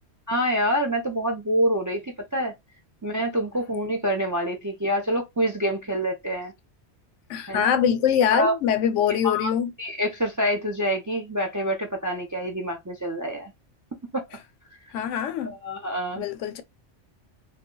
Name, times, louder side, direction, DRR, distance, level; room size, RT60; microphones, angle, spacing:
voice 1, 0.3-2.0 2.3-2.5 3.0-6.5 7.5-7.7 8.3-8.5 9.2-9.5 9.8-13.5 14.1-14.2 15.5-16.3, equal, 30° right, 0.3 m, -26 dB
voice 2, 7.3-9.7 14.9-15.6 16.2-16.6, left 8 dB, 85° left, 0.9 m, -23 dB
2.2 x 2.2 x 3.7 m
omnidirectional pair, 1.2 m